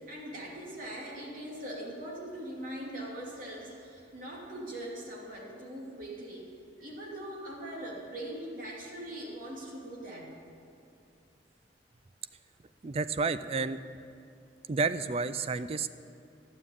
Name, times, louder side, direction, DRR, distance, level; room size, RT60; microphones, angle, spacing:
voice 1, 0.1-6.5 6.8-10.3, right 1 dB, 50° right, -3 dB, 2.7 m, -41 dB
voice 2, 12.8-13.8 14.7-15.9, right 4 dB, 35° right, 13 dB, 0.4 m, -30 dB
11.5 x 7.4 x 9.8 m, 2.6 s
head